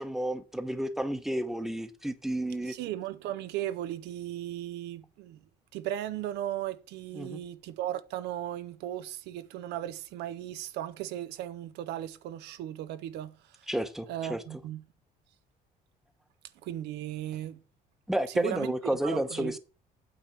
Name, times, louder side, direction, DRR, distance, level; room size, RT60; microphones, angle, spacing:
voice 1, 0.0-2.7 7.1-7.4 13.7-14.4 18.1-19.6, right 1 dB, ahead, 0.9 m, -31 dB
voice 2, 2.7-5.4 5.7-13.4 14.1-14.8 16.6-17.6 18.3-18.7 19.0-19.5, right 12 dB, 80° right, 0.6 m, -36 dB
8.9 x 3.4 x 6.6 m
cardioid pair, 110°, 17 cm